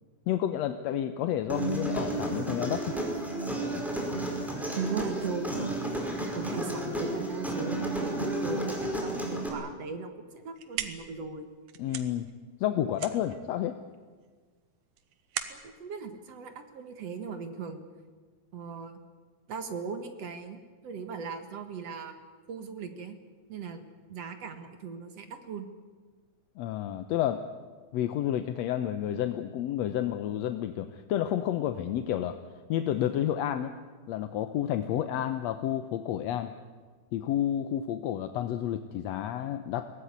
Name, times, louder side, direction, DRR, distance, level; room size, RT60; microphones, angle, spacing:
voice 1, 0.3-2.9 11.8-12.3 12.6-13.8 26.6-27.4 27.9-32.4 32.7-33.8 34.1-36.5 37.1-39.9, left 11 dB, 70° left, 8 dB, 1.9 m, -30 dB
Human voice, 1.5-9.5, right 1 dB, ahead, 4.6 m, -32 dB
voice 2, 4.8-5.8 6.3-11.5 15.5-17.8 18.5-19.0 19.5-22.2 22.5-23.1 23.5-23.8 24.1-25.7, right 5 dB, 55° right, 8 dB, 2.5 m, -38 dB
sound 1, 10.3-17.2, right 10 dB, 90° right, 2.8 m, -41 dB
23.0 x 18.0 x 9.5 m, 1.4 s
omnidirectional pair, 3.6 m